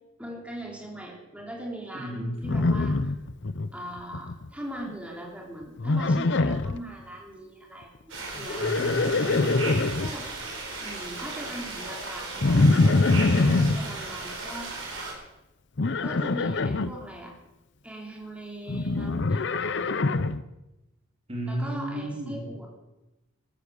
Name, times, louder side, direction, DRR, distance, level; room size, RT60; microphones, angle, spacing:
voice 1, 0.2-3.1 3.7-8.6 10.0-10.3 10.8-14.7 16.0-17.3 17.8-20.0 21.5-22.7, right 1 dB, 5° right, -1 dB, 3.3 m, -40 dB
voice 2, 1.9-2.4 8.5-10.0 21.3-22.4, right 1 dB, 30° right, 0 dB, 3.7 m, -33 dB
Livestock farm animals working animals, 2.4-3.7 4.0-4.5 5.8-6.8 8.4-10.1 12.4-13.8 15.8-16.9 18.7-20.4, left 3 dB, 55° left, 0.7 m, -24 dB
sound 1, 8.1-15.1, right 3 dB, 65° right, 4.8 m, -36 dB
14.5 x 13.5 x 6.8 m, 0.96 s
head